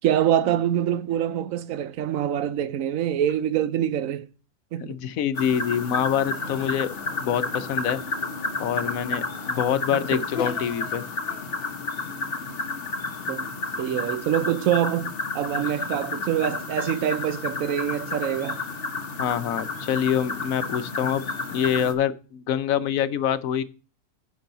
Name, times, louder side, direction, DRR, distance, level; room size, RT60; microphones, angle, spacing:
voice 1, 0.0-4.3 4.7-5.0 10.1-10.2 13.3-13.5 13.8-18.6, right 10 dB, 70° right, 1.0 m, -25 dB
voice 2, 4.8-6.9 7.2-8.0 8.6-11.0 19.2-23.6, left 9 dB, 70° left, 1.1 m, -25 dB
sound 1, 5.3-21.9, left 3 dB, 45° left, 1.1 m, -31 dB
10.0 x 6.3 x 3.9 m
omnidirectional pair, 1.6 m